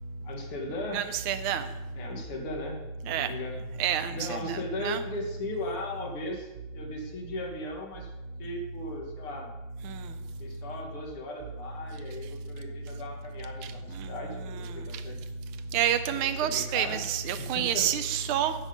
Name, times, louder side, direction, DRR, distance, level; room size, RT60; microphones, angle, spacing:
voice 1, 0.2-1.1 1.9-2.8 3.1-3.6 4.1-8.1 8.4-9.5 10.4-15.2 16.1-17.0 17.4-17.9, left 1 dB, 85° left, 1 dB, 2.4 m, -37 dB
voice 2, 0.9-1.7 3.1-3.3 3.8-5.0 9.8-10.1 14.0-14.1 14.4-14.7 15.7-18.5, right 9 dB, 80° right, 10 dB, 1.5 m, -29 dB
8.6 x 7.0 x 5.0 m, 1.1 s
omnidirectional pair, 2.4 m